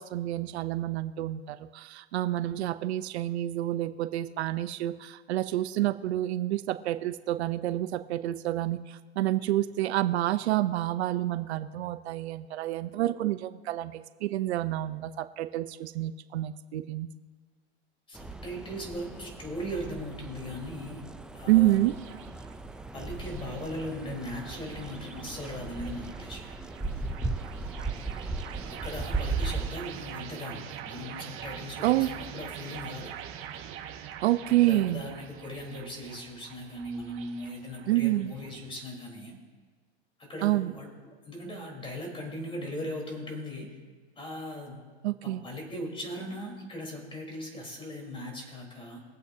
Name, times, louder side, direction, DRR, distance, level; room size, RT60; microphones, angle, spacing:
voice 1, 0.0-17.1 21.5-22.0 31.8-32.1 34.2-35.0 37.9-38.3 40.4-40.7 45.0-45.4, right 15 dB, 75° right, 12 dB, 0.7 m, -28 dB
voice 2, 18.1-21.0 21.3-21.9 22.9-26.4 28.8-33.1 34.6-39.4 40.2-40.9 41.3-43.8 44.2-44.8 45.2-49.0, equal, 15° left, 0 dB, 3.9 m, -39 dB
sound 1, 18.1-29.7, right 3 dB, ahead, 0.4 m, -37 dB
sound 2, 20.1-38.8, right 9 dB, 40° right, 1.7 m, -45 dB
23.0 x 8.1 x 2.8 m, 1.5 s
hypercardioid pair, 120°, 33 cm